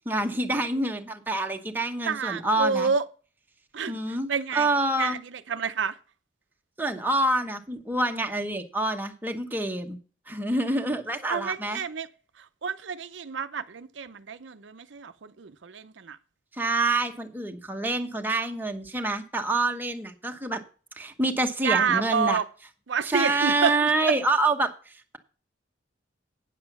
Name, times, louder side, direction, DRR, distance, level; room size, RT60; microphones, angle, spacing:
voice 1, 0.0-2.9 3.9-5.2 6.8-10.0 10.3-11.8 16.5-20.6 21.0-22.4 23.0-25.2, right 2 dB, 10° right, 1.0 m, -27 dB
voice 2, 2.1-3.0 3.7-4.7 5.0-6.0 11.3-12.1 12.4-16.2 21.6-22.5 22.9-24.2, right 6 dB, 70° right, 0.6 m, -29 dB
9.1 x 7.6 x 6.0 m
head